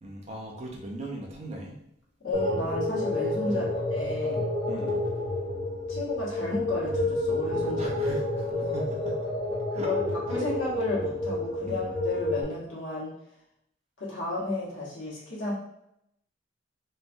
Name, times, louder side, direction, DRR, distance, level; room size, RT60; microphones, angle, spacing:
voice 1, 0.0-1.8 3.5-3.7 4.6-5.0 7.8-9.3 9.7-9.9 10.3-10.4 11.7-11.8, right 1 dB, 35° right, -1 dB, 0.5 m, -39 dB
voice 2, 2.2-4.4 5.9-8.0 8.5-8.7 9.7-10.0 10.3-13.1 14.0-15.5, left 2 dB, 85° left, -6 dB, 1.2 m, -32 dB
sound 1, 2.3-12.4, left 1 dB, 25° left, 0.5 m, -30 dB
3.1 x 2.2 x 2.5 m, 0.78 s
head